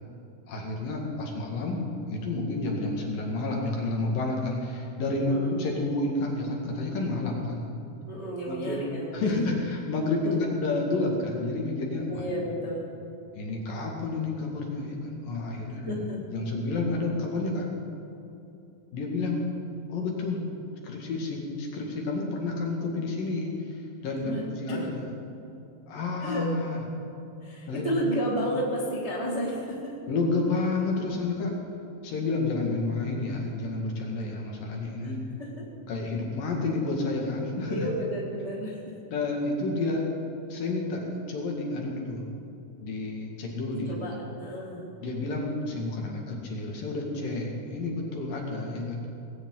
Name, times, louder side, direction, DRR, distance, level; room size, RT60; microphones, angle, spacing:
voice 1, 0.5-1.8 2.1-7.7 8.5-8.8 9.1-12.5 13.4-16.0 16.3-17.7 18.9-19.4 19.9-20.4 20.8-25.1 25.9-26.8 27.7-28.0 30.1-31.5 32.0-35.2 35.9-37.9 39.1-40.1 40.5-42.3 42.8-44.0 45.0-49.0, left 2 dB, 60° left, -1 dB, 3.6 m, -30 dB
voice 2, 5.2-5.5 8.1-9.5 10.2-10.5 12.1-12.8 15.7-16.2 24.2-25.0 26.2-26.5 27.4-29.9 35.0-35.7 37.7-38.9 43.7-44.9, right 1 dB, 25° right, -4 dB, 1.5 m, -32 dB
19.5 x 17.5 x 4.0 m, 2.8 s
omnidirectional pair, 4.9 m